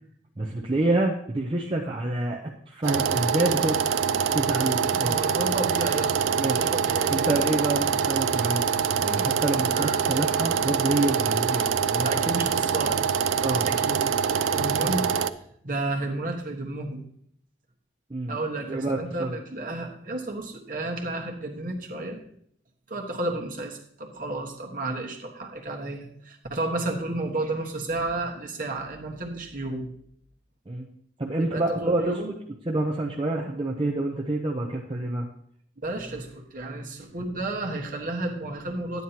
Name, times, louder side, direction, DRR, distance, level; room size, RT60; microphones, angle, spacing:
voice 1, 0.4-2.4 2.7-3.8 4.3-5.1 6.4-6.7 7.1-8.6 9.0-12.2 13.4-13.7 18.1-19.4 30.7-30.9 31.2-32.1 32.7-35.3, right 2 dB, 25° right, -1 dB, 0.6 m, -27 dB
sound 1, 2.8-15.3, right 7 dB, 90° right, 0.4 m, -25 dB
voice 2, 4.9-7.5 9.7-10.0 12.0-13.0 13.7-14.0 14.5-15.1 15.6-17.0 18.3-22.2 22.9-29.9 31.4-32.3 35.8-39.0, right 2 dB, 45° right, 1 dB, 1.3 m, -32 dB
11.0 x 9.3 x 2.9 m, 0.66 s
head